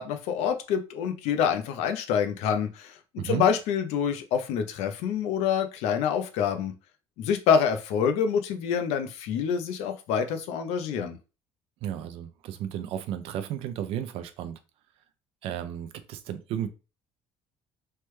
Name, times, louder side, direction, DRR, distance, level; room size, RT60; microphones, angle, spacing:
voice 1, 0.0-3.0 3.2-6.7 7.2-11.2, left 7 dB, 80° left, 7 dB, 0.5 m, -26 dB
voice 2, 11.8-14.6 15.4-16.7, right 10 dB, 60° right, 9 dB, 0.4 m, -33 dB
3.3 x 2.2 x 3.0 m, 0.31 s
cardioid pair, 165°, 11 cm